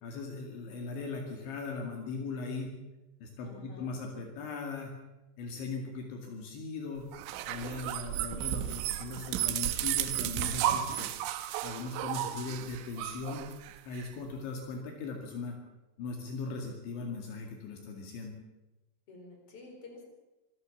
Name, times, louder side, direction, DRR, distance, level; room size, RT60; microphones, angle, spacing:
voice 1, 0.0-2.7 3.2-4.9 5.4-7.1 7.5-11.1 11.6-13.5 13.9-15.6 16.0-18.3, left 4 dB, 70° left, 2 dB, 4.5 m, -39 dB
voice 2, 3.4-3.9 19.1-20.0, left 3 dB, 30° left, 1 dB, 5.4 m, -50 dB
sound 1, 7.1-14.1, right 12 dB, 85° right, 3.4 m, -33 dB
25.5 x 14.5 x 7.2 m, 1.1 s
omnidirectional pair, 5.6 m